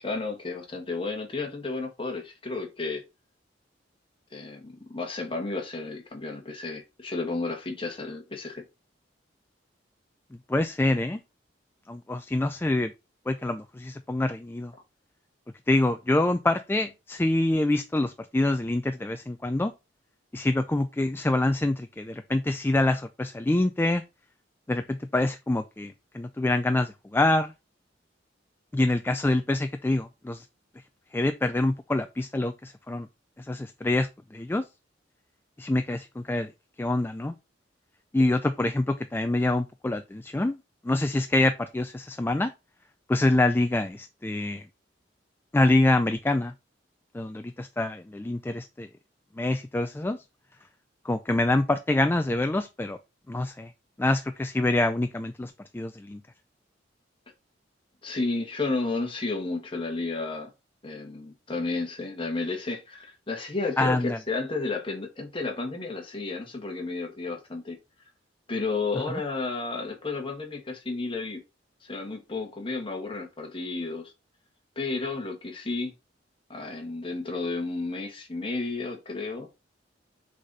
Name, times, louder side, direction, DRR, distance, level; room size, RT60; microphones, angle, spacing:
voice 1, 0.0-3.0 4.3-8.6 58.0-60.5 60.8-67.8 68.5-71.4 71.8-74.1 74.7-75.9 76.5-79.5, left 3 dB, 30° left, 1.6 m, -32 dB
voice 2, 10.5-11.2 11.9-12.9 13.3-14.7 15.7-19.7 20.3-24.0 24.7-27.5 28.7-30.5 31.1-33.1 33.4-34.6 35.6-36.5 36.8-37.3 38.1-40.6 40.8-42.5 43.1-44.6 45.5-46.5 47.1-48.9 49.4-50.2 51.0-53.0 53.3-53.7 54.0-56.2 63.8-64.2 69.1-69.2, left 2 dB, 10° left, 0.3 m, -26 dB
6.3 x 4.1 x 4.0 m
head